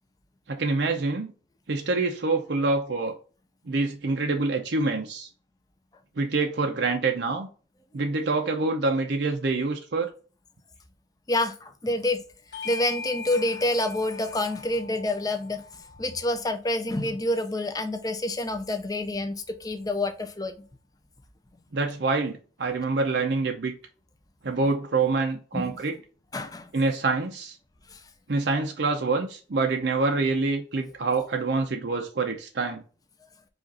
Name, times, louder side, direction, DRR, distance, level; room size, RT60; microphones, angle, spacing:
voice 1, 0.5-1.3 1.7-3.1 3.7-5.3 6.2-7.5 7.9-10.1 21.7-23.7 24.4-26.0 26.7-27.6 28.3-32.8, right 3 dB, 65° right, 0.6 m, -26 dB
voice 2, 11.3-12.2 12.6-15.6 16.0-20.5 25.5-25.7 26.3-26.7 27.9-28.0, left 1 dB, 20° left, 0.6 m, -28 dB
Bell / Doorbell, 12.5-17.4, left 4 dB, 75° left, 0.9 m, -41 dB
5.1 x 2.5 x 3.9 m
head